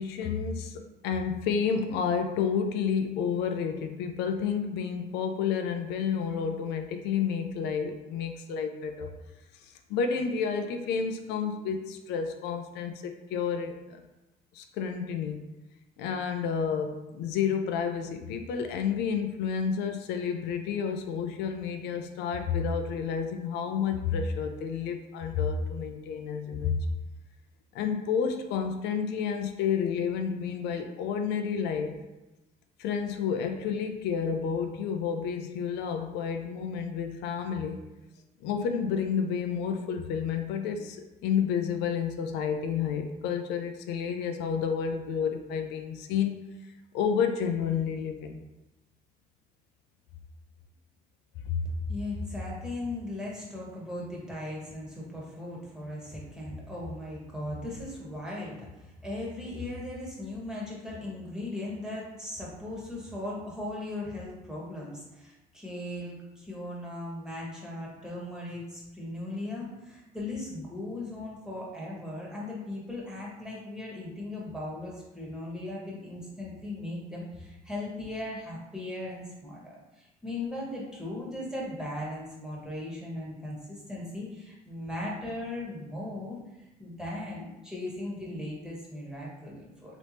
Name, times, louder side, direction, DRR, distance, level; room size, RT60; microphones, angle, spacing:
voice 1, 0.0-9.1 9.5-14.0 14.5-15.5 16.0-26.8 27.7-32.0 32.8-37.8 38.4-48.3 51.4-51.6, left 6 dB, 85° left, 6 dB, 0.5 m, -30 dB
voice 2, 51.8-90.0, left 1 dB, 5° right, -5 dB, 1.3 m, -38 dB
3.3 x 3.0 x 4.1 m, 1.0 s
cardioid pair, 110°, 17 cm